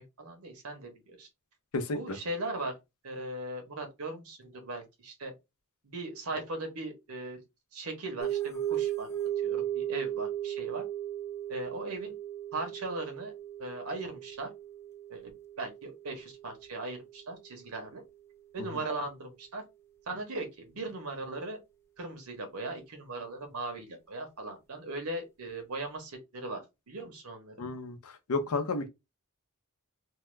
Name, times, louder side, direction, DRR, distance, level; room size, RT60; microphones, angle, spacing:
voice 1, 0.2-1.3 1.9-2.7 3.0-5.3 5.8-7.4 7.7-9.1 9.4-10.8 11.5-12.2 12.5-13.3 13.6-14.5 15.1-18.0 18.5-19.6 20.1-21.6 22.0-27.5, right 2 dB, 80° right, 1.0 m, -38 dB
sound 1, 8.2-17.1, right 11 dB, 10° left, 0.5 m, -36 dB
voice 2, 27.6-28.9, left 3 dB, 80° left, 0.6 m, -32 dB
2.8 x 2.2 x 3.2 m
head